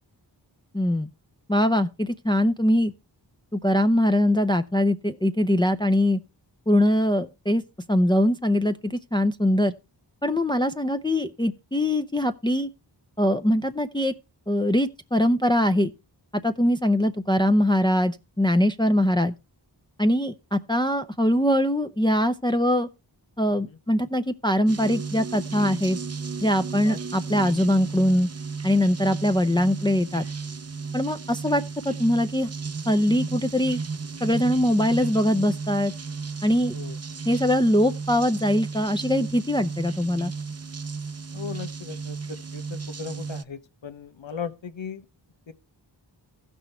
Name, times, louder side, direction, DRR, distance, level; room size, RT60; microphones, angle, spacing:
voice 1, 0.7-1.1 1.5-2.9 3.5-6.2 6.7-7.6 7.9-9.7 10.2-12.7 13.2-14.1 14.5-15.9 16.4-19.3 20.0-22.9 23.4-26.0 26.4-28.3 28.6-30.3 30.9-32.5 32.9-33.8 34.2-35.9 36.4-36.8 37.3-40.3, left 1 dB, 10° left, 0.6 m, -22 dB
sound 1, 24.7-43.4, right 4 dB, 35° right, 0.6 m, -34 dB
voice 2, 41.3-45.1 45.5-45.6, left 6 dB, 85° left, 1.1 m, -37 dB
15.0 x 6.2 x 4.4 m
wide cardioid pair, 50°, 44 cm